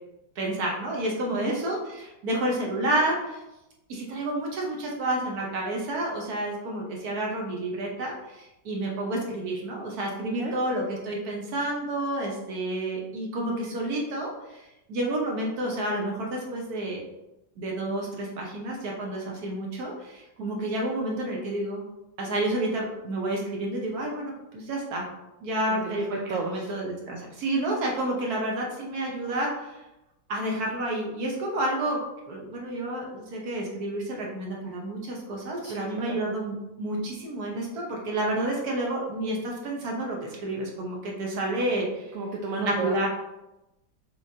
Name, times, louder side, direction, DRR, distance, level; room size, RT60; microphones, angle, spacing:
voice 1, 0.4-3.4 3.9-17.0 17.6-21.8 22.2-25.1 25.4-26.1 26.4-29.8 30.3-32.0 32.3-42.0 42.6-43.1, right 1 dB, 60° right, -1 dB, 1.3 m, -30 dB
voice 2, 25.7-26.7 35.6-36.2 42.1-43.1, right 3 dB, 90° right, 0 dB, 0.7 m, -33 dB
6.1 x 3.1 x 2.7 m, 0.95 s
omnidirectional pair, 2.0 m